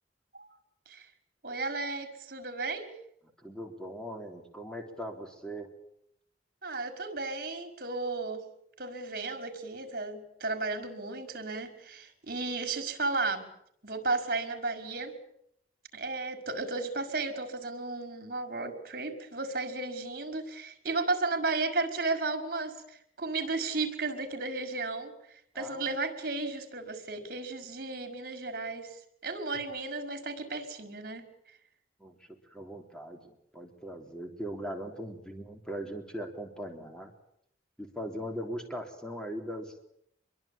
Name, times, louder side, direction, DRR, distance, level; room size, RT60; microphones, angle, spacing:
voice 1, 1.4-2.9 6.6-8.4 8.8-13.5 13.8-15.1 15.9-31.3, right 3 dB, 50° right, 6 dB, 5.4 m, -34 dB
voice 2, 3.4-5.7 25.5-25.9 32.0-37.1 37.8-39.8, equal, 5° left, 4 dB, 3.6 m, -40 dB
26.0 x 22.5 x 8.8 m, 0.72 s
head